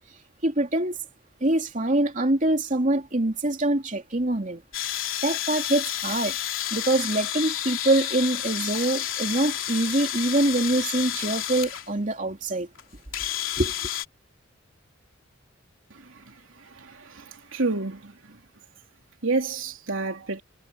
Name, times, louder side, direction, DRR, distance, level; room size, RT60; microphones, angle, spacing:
voice 1, 0.4-1.0 1.4-4.9 5.2-6.3 6.7-12.7 13.6-13.7, right 1 dB, 40° right, 3.0 m, -24 dB
sound 1, 4.7-11.9 12.8-12.9 13.1-14.1, left 12 dB, 85° left, 3.1 m, -30 dB
voice 2, 16.8-18.1 19.2-20.4, right 3 dB, 80° right, 3.1 m, -29 dB
head